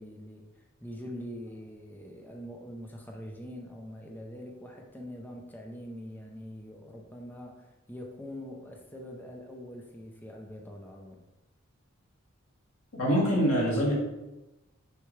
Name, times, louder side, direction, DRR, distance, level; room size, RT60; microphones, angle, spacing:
voice 1, 0.0-11.2, equal, 10° left, 1 dB, 0.7 m, -44 dB
voice 2, 12.9-13.9, equal, 85° left, -4 dB, 2.5 m, -24 dB
6.8 x 5.9 x 3.3 m, 1.0 s
head